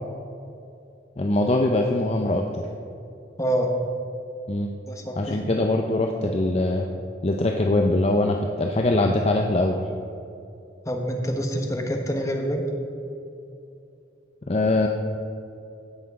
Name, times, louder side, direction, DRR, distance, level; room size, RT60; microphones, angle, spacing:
voice 1, 1.2-2.7 4.5-4.7 5.2-6.9 7.2-9.8 14.5-14.9, left 2 dB, 35° left, 2 dB, 0.6 m, -22 dB
voice 2, 3.4-3.8 4.9-5.4 10.8-12.6, equal, 20° left, 2 dB, 1.2 m, -26 dB
16.5 x 6.1 x 4.8 m, 2.7 s
head